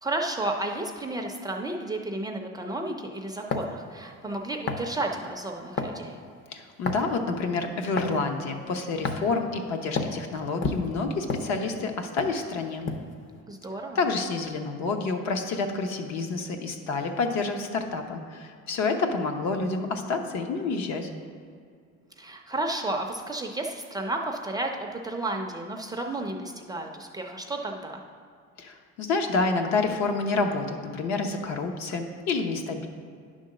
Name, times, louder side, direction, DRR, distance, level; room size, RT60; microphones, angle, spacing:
voice 1, 0.0-6.2 13.5-14.0 22.2-28.0, right 2 dB, 15° right, 2 dB, 0.4 m, -32 dB
sound 1, 3.5-3.8 4.7-4.9 5.8-6.0 6.9-7.2 8.0-8.2 9.0-9.3 10.0-10.2 10.6-11.9 12.2-12.4 12.9-13.1, left 4 dB, 40° left, 0.6 m, -30 dB
voice 2, 6.5-12.9 13.9-21.1 28.6-32.9, left 3 dB, 65° left, 4 dB, 0.9 m, -28 dB
9.9 x 3.7 x 6.3 m, 2.2 s
cardioid pair, 160°, 30 cm